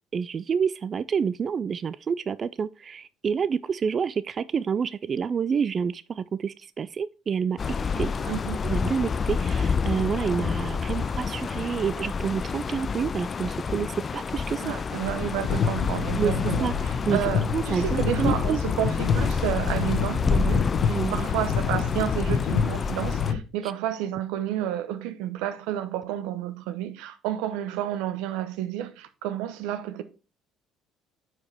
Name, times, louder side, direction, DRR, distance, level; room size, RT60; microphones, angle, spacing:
voice 1, 0.1-7.6 8.0-8.1 8.6-14.7 16.2-16.3 16.6-17.3 17.5-18.6 20.9-21.3, right 6 dB, 40° right, 0.3 m, -28 dB
sound 1, 7.6-23.3, left 5 dB, 35° left, 0.4 m, -28 dB
voice 2, 8.2-8.6 14.6-30.0, right 12 dB, 85° right, 0.8 m, -31 dB
sound 2, 15.4-23.4, left 7 dB, 75° left, 1.2 m, -28 dB
9.3 x 4.9 x 3.4 m
cardioid pair, 100°, 0 cm